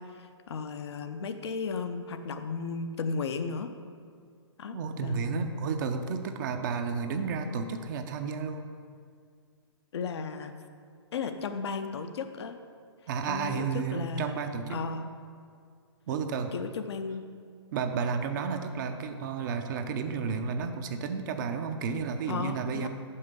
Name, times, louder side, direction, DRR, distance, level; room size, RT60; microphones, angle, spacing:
voice 1, 0.0-3.7 4.6-5.5 9.9-10.5 11.1-12.6 13.3-14.4 14.7-15.1 16.5-17.2 22.3-22.9, left 5 dB, 65° left, 8 dB, 0.6 m, -35 dB
voice 2, 4.7-8.7 13.1-14.8 16.1-16.5 17.7-22.9, right 5 dB, 45° right, 7 dB, 0.6 m, -32 dB
5.6 x 5.6 x 6.7 m, 2.1 s
hypercardioid pair, 140°, 15 cm